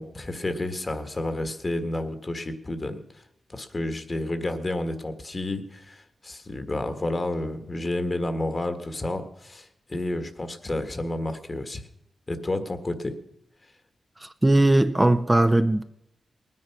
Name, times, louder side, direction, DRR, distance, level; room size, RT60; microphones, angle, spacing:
voice 1, 0.0-3.2 3.5-11.9 12.3-13.2, left 1 dB, 40° left, 1.7 m, -30 dB
voice 2, 14.2-15.8, right 1 dB, 15° right, 0.7 m, -19 dB
19.0 x 9.7 x 6.0 m
cardioid pair, 60°, 0 cm